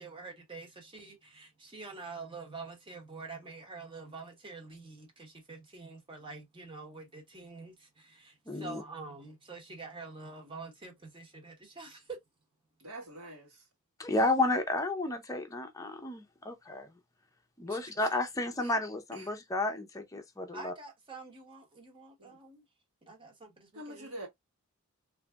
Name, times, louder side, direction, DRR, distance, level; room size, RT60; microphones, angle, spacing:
voice 1, 0.0-12.2 20.5-22.6 23.1-24.1, right 4 dB, 25° right, 1.1 m, -46 dB
voice 2, 8.5-8.8 14.0-16.9 17.6-20.7, left 2 dB, 15° left, 0.6 m, -32 dB
voice 3, 12.8-13.6 17.7-17.9 18.6-18.7 19.1-19.3 22.2-22.4 23.7-24.3, right 1 dB, 70° right, 1.4 m, -45 dB
3.2 x 2.6 x 2.2 m
head